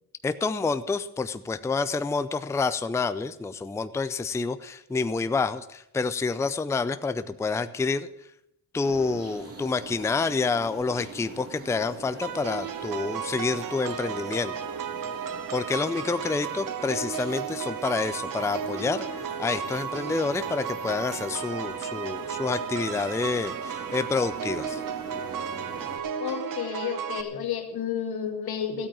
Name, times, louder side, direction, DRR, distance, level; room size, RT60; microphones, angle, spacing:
voice 1, 0.2-8.1 8.7-14.5 15.5-19.1 19.4-24.8, left 4 dB, 10° left, 12 dB, 0.5 m, -28 dB
sound 1, 8.8-26.0, right 3 dB, 40° right, 3.2 m, -43 dB
sound 2, 12.2-27.2, right 8 dB, 60° right, 1.1 m, -34 dB
voice 2, 26.2-28.9, left 8 dB, 80° left, 5 dB, 2.1 m, -31 dB
13.5 x 8.7 x 7.6 m, 0.80 s
cardioid pair, 120°, 37 cm